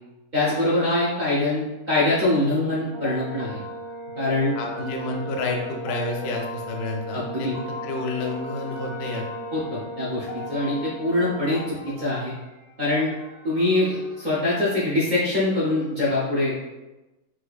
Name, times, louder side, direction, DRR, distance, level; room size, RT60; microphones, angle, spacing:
voice 1, 0.3-3.6 4.2-4.5 7.1-7.5 9.5-12.3 12.8-13.1 13.4-16.6, left 2 dB, 70° right, -8 dB, 0.4 m, -23 dB
Brass instrument, 2.9-11.8, right 1 dB, 90° right, 1.3 m, -37 dB
sound 1, 3.0-14.3, left 3 dB, 85° left, 1.4 m, -43 dB
voice 2, 4.5-9.2, left 2 dB, 70° left, 1 dB, 1.0 m, -30 dB
4.4 x 2.3 x 2.3 m, 1.1 s
omnidirectional pair, 1.8 m